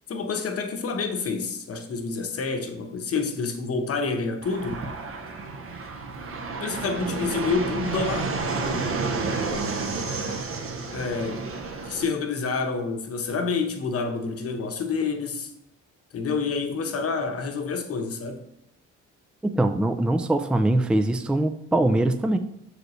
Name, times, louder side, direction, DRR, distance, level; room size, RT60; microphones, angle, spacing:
voice 1, 0.1-4.8 6.6-8.3 10.9-11.4 11.8-15.5 16.1-18.4, left 4 dB, 50° left, 1.0 m, -28 dB
Fixed-wing aircraft airplane, 4.4-12.0, right 3 dB, 45° right, 0.9 m, -30 dB
voice 2, 19.4-22.4, right 1 dB, 5° right, 0.4 m, -22 dB
6.4 x 5.0 x 3.1 m
cardioid pair, 90°, 30 cm